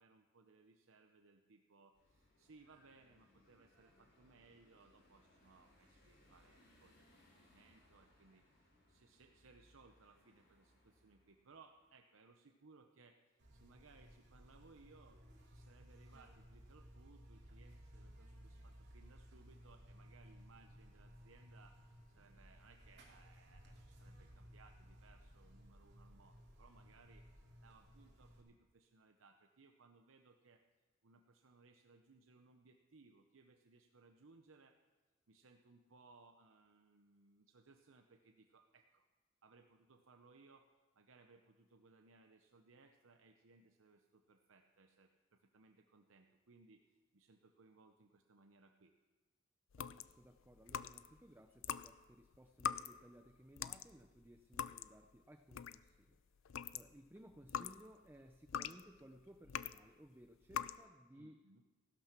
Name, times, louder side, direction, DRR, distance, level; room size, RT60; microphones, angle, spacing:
voice 1, 0.0-30.6 31.0-34.8 35.3-39.1 39.4-40.7 40.9-48.9 61.1-61.6, right 3 dB, 75° right, 5 dB, 0.8 m, -66 dB
sound 1, 1.9-11.9, left 1 dB, 60° left, 5.7 m, -70 dB
Buzz, 13.4-28.4, equal, 55° right, 3.1 m, -59 dB
sound 2, 49.7-51.2 51.6-56.0 56.4-59.9 60.4-60.8, left 8 dB, 75° left, 0.4 m, -44 dB
voice 2, 49.9-56.2 56.4-61.4, right 1 dB, 10° right, 7 dB, 0.5 m, -60 dB
15.5 x 11.5 x 5.9 m, 1.3 s
head